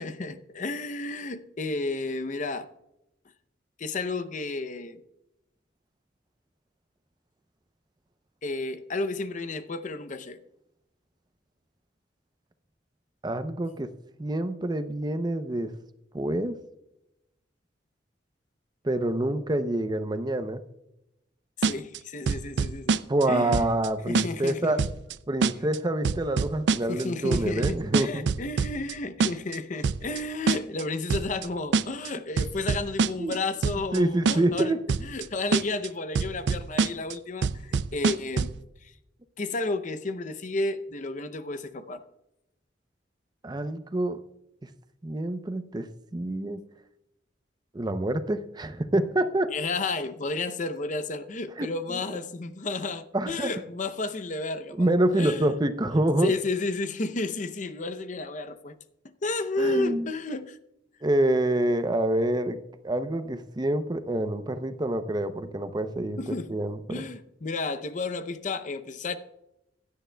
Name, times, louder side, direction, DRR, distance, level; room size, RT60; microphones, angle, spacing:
voice 1, 0.0-2.7 3.8-5.0 8.4-10.4 21.6-23.0 23.3-23.7 24.1-24.9 26.9-38.5 38.8-38.9 39.4-42.0 49.5-54.9 55.1-55.5 56.2-58.7 59.2-60.6 66.2-66.5 66.9-69.2, left 3 dB, 45° left, 0.6 m, -32 dB
voice 2, 13.2-13.9 14.2-15.7 16.1-16.6 18.8-20.6 23.1-24.8 25.3-28.3 33.2-33.4 33.9-34.8 43.4-44.2 45.0-46.6 47.7-49.5 51.6-51.7 53.1-53.5 54.8-56.3 59.6-60.1 61.0-62.6 62.8-67.0, right 1 dB, 25° right, 0.6 m, -27 dB
sound 1, 21.6-22.0 22.3-23.2 23.5-23.9 24.1-24.5 24.8-25.1 25.4-25.8 26.0-27.0 27.3-28.9 29.2-29.6 29.8-30.2 30.5-30.8 31.1-31.5 31.7-32.1 32.4-33.3 33.6-34.0 34.3-34.6 34.9-35.2 35.5-35.9 36.1-37.1 37.4-38.6, right 5 dB, 70° right, 0.4 m, -25 dB
16.5 x 11.5 x 2.2 m
head